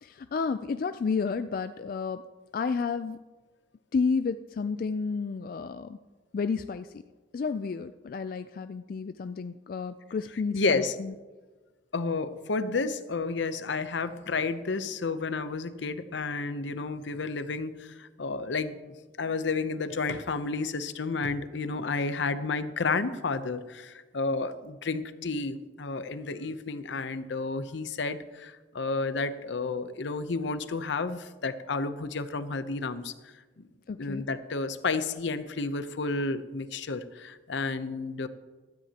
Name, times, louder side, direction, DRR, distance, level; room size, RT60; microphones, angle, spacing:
voice 1, 0.0-2.2 2.5-3.2 3.9-6.0 6.3-7.0 7.3-11.1 33.9-34.2, left 5 dB, 50° left, 10 dB, 0.3 m, -31 dB
voice 2, 10.5-10.9 11.9-18.8 19.2-33.7 34.0-38.3, left 3 dB, 75° left, 12 dB, 0.7 m, -31 dB
16.0 x 13.0 x 2.9 m, 1.3 s
head